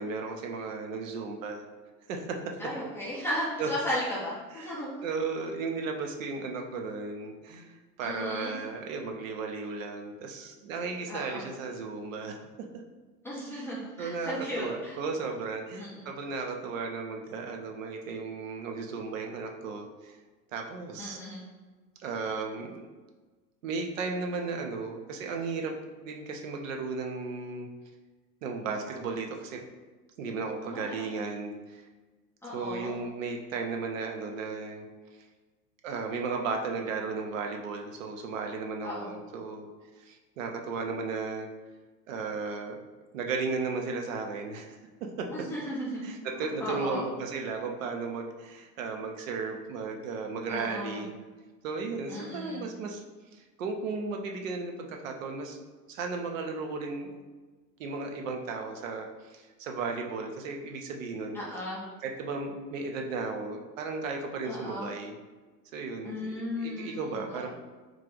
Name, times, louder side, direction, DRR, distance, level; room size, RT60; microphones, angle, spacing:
voice 1, 0.0-1.7 2.1-2.5 3.6-3.7 4.6-4.7 5.0-12.4 13.5-13.6 14.0-20.2 20.5-21.2 22.0-22.9 23.6-25.7 26.0-27.7 28.4-29.6 30.2-31.9 32.5-34.9 35.8-39.7 40.0-41.5 42.1-42.8 43.1-44.8 45.2-45.3 46.0-51.1 51.6-53.0 53.3-55.6 55.9-57.2 57.8-61.4 62.0-65.1 65.7-67.5, right 4 dB, 55° right, 2 dB, 0.6 m, -35 dB
voice 2, 2.6-5.1 8.0-8.6 11.1-11.4 13.2-15.0 15.8-16.1 21.0-21.4 30.6-31.4 32.4-33.0 38.8-39.2 45.3-47.0 50.5-51.0 52.1-52.7 61.3-61.8 64.4-64.9 66.0-67.5, left 1 dB, 5° left, -9 dB, 0.4 m, -36 dB
3.1 x 2.4 x 3.7 m, 1.3 s
figure-of-eight pair, 95°, 49 cm